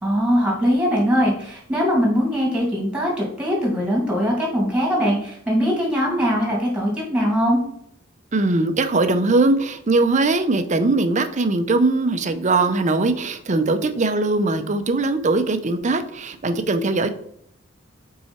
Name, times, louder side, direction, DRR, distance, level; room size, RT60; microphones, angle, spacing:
voice 1, 0.0-7.6, equal, 5° right, -3 dB, 2.5 m, -21 dB
voice 2, 8.3-17.1, right 2 dB, 40° right, 9 dB, 0.6 m, -20 dB
5.8 x 4.7 x 4.3 m, 0.68 s
head